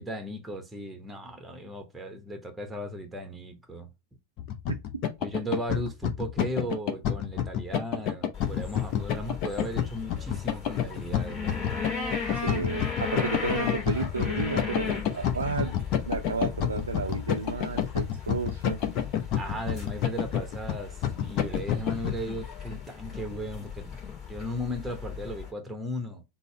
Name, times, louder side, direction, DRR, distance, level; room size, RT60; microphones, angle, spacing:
voice 1, 0.0-3.9 5.2-11.9 19.3-26.2, equal, 5° right, 0.8 m, -36 dB
sound 1, 4.4-22.1, left 10 dB, 40° left, 0.6 m, -29 dB
voice 2, 4.7-5.0 12.4-15.8 16.1-18.8, right 4 dB, 75° right, 0.4 m, -32 dB
sound 2, 8.3-25.5, left 5 dB, 25° left, 1.7 m, -37 dB
3.9 x 2.0 x 4.4 m
figure-of-eight pair, 90°, 0 cm